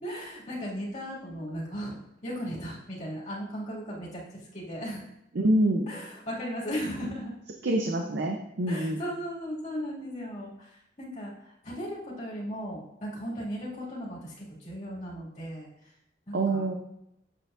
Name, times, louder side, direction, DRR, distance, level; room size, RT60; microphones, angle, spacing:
voice 1, 0.0-2.0 2.2-5.1 5.9-7.3 8.7-15.9 16.3-16.8, equal, 40° left, -6 dB, 2.2 m, -37 dB
voice 2, 5.4-5.9 7.6-9.0 16.3-16.7, right 1 dB, 70° right, 3 dB, 0.6 m, -26 dB
7.8 x 6.7 x 2.5 m, 0.80 s
head